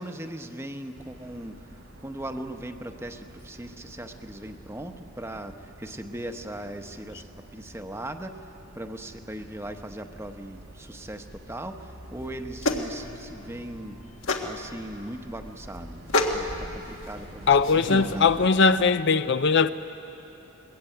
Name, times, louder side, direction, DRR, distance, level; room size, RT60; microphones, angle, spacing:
voice 1, 0.0-14.0 14.4-16.0 16.3-18.5, right 1 dB, 10° right, 1.0 m, -39 dB
sound 1, 0.9-18.9, right 1 dB, 75° right, 3.6 m, -47 dB
sound 2, 12.0-18.1, left 2 dB, 80° left, 1.7 m, -31 dB
voice 2, 17.5-19.7, left 5 dB, 55° left, 0.6 m, -20 dB
22.5 x 21.0 x 9.2 m
head